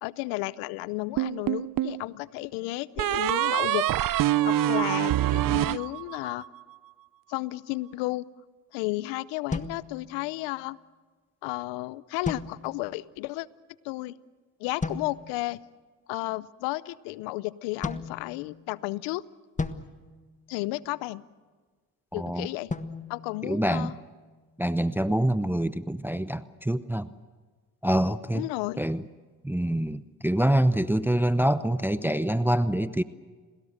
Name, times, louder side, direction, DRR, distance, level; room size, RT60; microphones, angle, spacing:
voice 1, 0.0-3.9 4.4-6.5 7.3-8.2 8.7-10.8 11.4-13.5 13.8-14.2 14.6-15.6 16.1-19.2 20.5-21.2 22.1-22.7 23.1-23.9 28.3-28.8, left 20 dB, 85° left, 20 dB, 0.7 m, -33 dB
sound 1, 1.2-2.0 3.0-6.5, right 13 dB, 50° right, 0.7 m, -25 dB
sound 2, 9.5-10.6 12.2-13.1 14.8-15.5 17.8-18.9 19.6-21.0 22.7-24.2, left 3 dB, 20° left, 1.5 m, -37 dB
voice 2, 22.1-22.5 23.4-23.9 24.6-27.1 27.8-28.5 28.8-29.0 29.4-33.0, right 1 dB, 5° right, 14 dB, 0.8 m, -25 dB
30.0 x 21.0 x 6.5 m, 1.4 s
hypercardioid pair, 55°, 42 cm